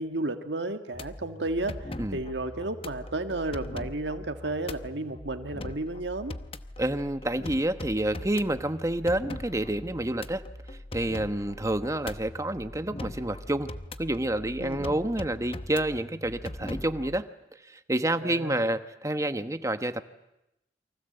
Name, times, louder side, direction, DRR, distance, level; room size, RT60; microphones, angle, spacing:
voice 1, 0.0-6.3 14.6-14.9 18.2-18.7, right 2 dB, 80° right, 7 dB, 1.7 m, -33 dB
sound 1, 0.9-17.2, left 1 dB, 30° left, 0.9 m, -41 dB
voice 2, 6.8-10.4 10.9-13.7 14.0-17.2 17.7-20.0, right 1 dB, 15° right, 10 dB, 1.1 m, -28 dB
29.5 x 24.0 x 8.0 m, 0.89 s
head